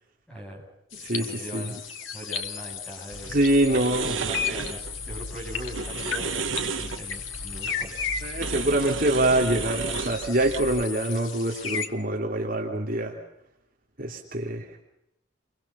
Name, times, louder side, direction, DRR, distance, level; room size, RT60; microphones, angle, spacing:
voice 1, 0.3-0.7 0.9-1.8 2.1-3.5 4.1-8.1, equal, 5° left, -2 dB, 8.0 m, -40 dB
sound 1, 0.9-11.9, left 7 dB, 75° left, 2.5 m, -35 dB
voice 2, 1.0-1.6 3.3-4.1 4.5-4.6 8.2-13.1 14.0-14.8, right 1 dB, 45° right, 0 dB, 3.1 m, -25 dB
sound 2, 3.1-10.8, right 5 dB, 70° right, 1.2 m, -34 dB
29.5 x 24.0 x 5.7 m, 0.84 s
head